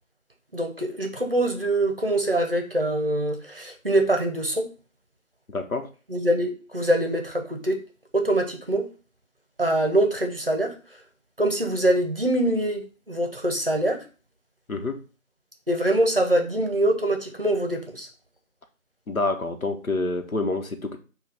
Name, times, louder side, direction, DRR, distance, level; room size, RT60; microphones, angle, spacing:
voice 1, 0.5-4.7 6.1-7.8 8.1-8.9 9.6-10.7 11.4-14.0 15.7-18.1, right 1 dB, 40° right, 3 dB, 0.7 m, -24 dB
voice 2, 5.5-5.9 14.7-15.0 19.1-21.0, left 3 dB, 75° left, 5 dB, 1.0 m, -27 dB
6.4 x 2.4 x 3.4 m, 0.35 s
figure-of-eight pair, 170°, 42 cm